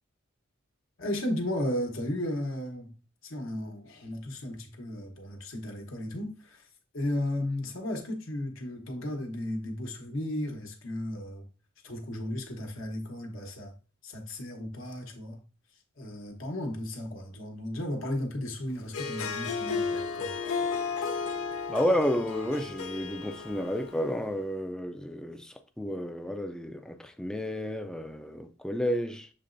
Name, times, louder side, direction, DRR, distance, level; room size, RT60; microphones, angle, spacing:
voice 1, 1.0-2.9 3.2-6.7 6.9-11.5 11.8-13.7 14.0-15.4 16.0-20.7, left 1 dB, 65° left, 1.0 m, -35 dB
Harp, 18.8-24.2, left 5 dB, 85° left, 0.5 m, -33 dB
voice 2, 21.7-29.3, equal, 5° left, 0.3 m, -31 dB
6.7 x 3.0 x 2.5 m
head